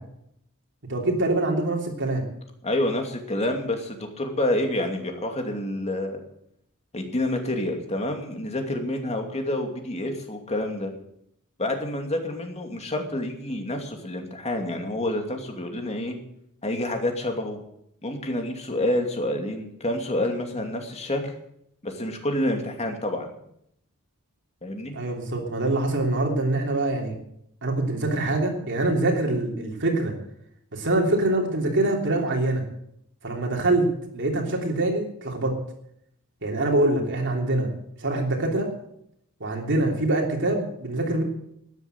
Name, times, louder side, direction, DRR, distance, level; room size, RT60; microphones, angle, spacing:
voice 1, 0.9-2.2 24.9-27.1 27.6-30.1 30.7-32.6 33.2-33.9 34.1-35.6 36.4-37.7 38.0-38.7 39.4-41.2, right 2 dB, 55° right, 1 dB, 3.1 m, -24 dB
voice 2, 2.6-6.2 6.9-10.9 11.6-16.2 16.6-17.6 18.0-21.3 21.8-23.4 24.6-24.9, left 1 dB, 30° left, 4 dB, 2.6 m, -28 dB
13.0 x 10.5 x 8.0 m, 0.73 s
head